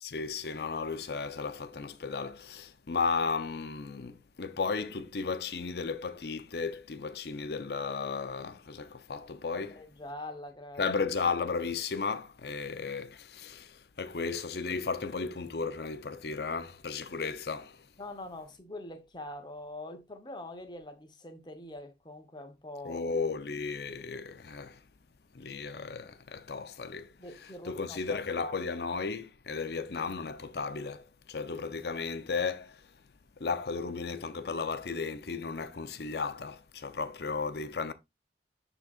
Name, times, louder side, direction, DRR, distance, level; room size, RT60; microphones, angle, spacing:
voice 1, 0.0-9.7 10.8-17.8 22.8-24.8 25.3-27.1 27.4-32.8 33.4-37.9, left 4 dB, 65° left, 0.6 m, -34 dB
voice 2, 9.5-11.0 18.0-23.0 27.2-28.6, left 1 dB, 25° left, 1.0 m, -44 dB
12.0 x 4.0 x 2.4 m
head